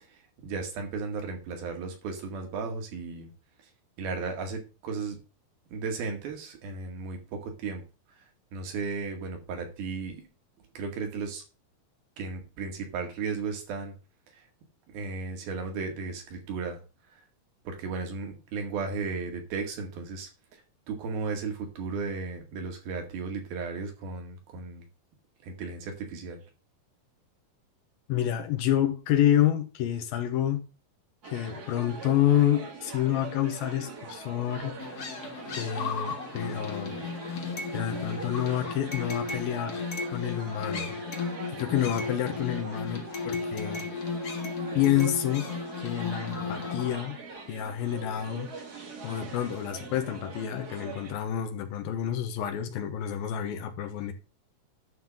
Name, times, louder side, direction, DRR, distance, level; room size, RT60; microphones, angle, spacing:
voice 1, 0.1-3.3 4.0-5.2 5.7-7.8 8.5-10.2 10.8-11.4 12.2-13.9 14.3-14.5 14.9-16.8 17.7-20.6 20.9-24.9 25.4-26.4, right 4 dB, 80° right, 3.9 m, -35 dB
voice 2, 28.1-30.6 31.2-34.7 35.5-37.0 37.7-39.9 40.1-41.0 41.5-44.1 44.8-45.5 45.8-47.2 47.5-48.5 49.0-54.1, left 11 dB, 85° left, 2.7 m, -28 dB
sound 1, 31.2-51.1, right 4 dB, 45° right, 1.2 m, -43 dB
sound 2, 34.8-46.9, left 4 dB, 60° left, 0.9 m, -35 dB
11.0 x 3.8 x 7.4 m
omnidirectional pair, 4.2 m